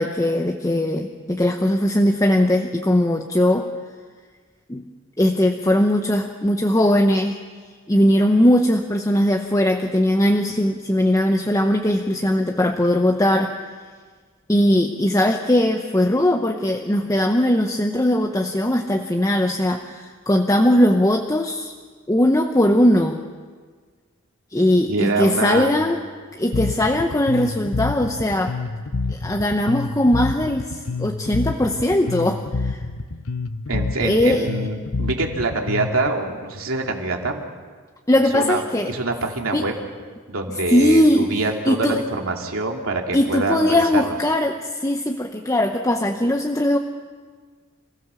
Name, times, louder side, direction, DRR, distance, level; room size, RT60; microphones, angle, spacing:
voice 1, 0.0-3.7 4.7-4.8 5.2-7.4 7.9-13.6 14.5-21.7 22.1-23.2 24.5-26.0 26.3-28.6 29.1-32.8 34.0-34.5 38.1-38.9 39.5-39.7 40.5-42.0 43.1-46.8, left 1 dB, 15° left, 3 dB, 0.9 m, -19 dB
voice 2, 24.9-25.7 33.7-37.4 38.1-38.6 38.9-39.7 40.3-44.2, right 2 dB, 85° right, 2 dB, 2.7 m, -25 dB
Bass guitar, 26.5-36.1, left 3 dB, 80° left, 0.9 m, -28 dB
27.5 x 16.5 x 7.0 m, 1.6 s
head